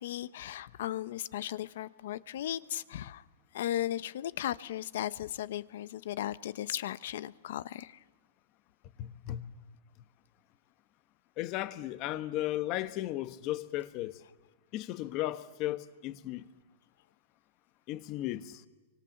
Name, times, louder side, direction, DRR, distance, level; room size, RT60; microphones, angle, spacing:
voice 1, 0.0-3.2 3.5-8.0, left 12 dB, 65° left, 0.9 m, -36 dB
voice 2, 9.0-9.5 11.4-14.2 14.7-16.4 17.9-18.7, left 15 dB, 35° left, 1.2 m, -35 dB
30.0 x 25.0 x 7.3 m
hypercardioid pair, 150°, 0 cm